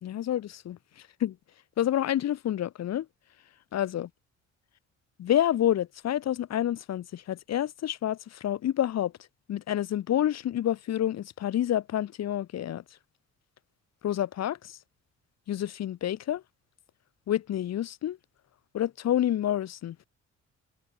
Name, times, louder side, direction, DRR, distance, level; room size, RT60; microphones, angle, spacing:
voice 1, 0.0-0.8 1.2-1.4 1.8-3.1 3.7-4.1 5.2-9.1 9.5-12.8 14.0-14.8 15.5-16.4 17.3-18.2 18.7-20.0, left 11 dB, 60° left, 1.0 m, -28 dB
cardioid pair, 90°, 30 cm